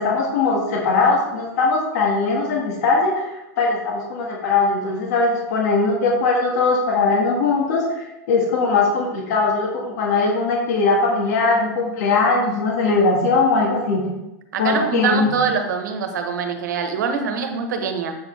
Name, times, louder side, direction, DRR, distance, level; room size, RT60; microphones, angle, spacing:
voice 1, 0.0-14.0 14.6-15.3, left 3 dB, 65° left, -1 dB, 1.9 m, -20 dB
voice 2, 14.5-18.2, right 5 dB, 85° right, 6 dB, 1.2 m, -24 dB
7.4 x 6.4 x 3.4 m, 0.93 s
supercardioid pair, 150°, 10 cm